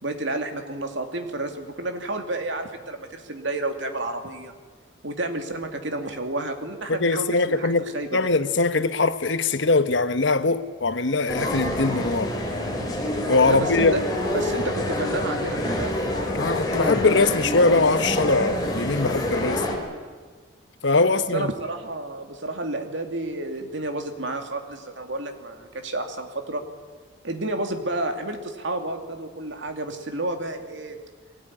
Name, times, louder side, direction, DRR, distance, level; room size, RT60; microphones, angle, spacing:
voice 1, 0.0-4.5 5.0-8.3 13.4-15.9 21.1-26.6 27.2-31.0, right 2 dB, 70° right, 2.6 m, -31 dB
voice 2, 6.9-12.3 13.3-13.9 16.3-19.7 20.8-21.5, left 3 dB, 70° left, 1.2 m, -22 dB
sound 1, 11.3-19.8, left 1 dB, 20° left, 4.0 m, -27 dB
22.5 x 18.0 x 10.0 m
head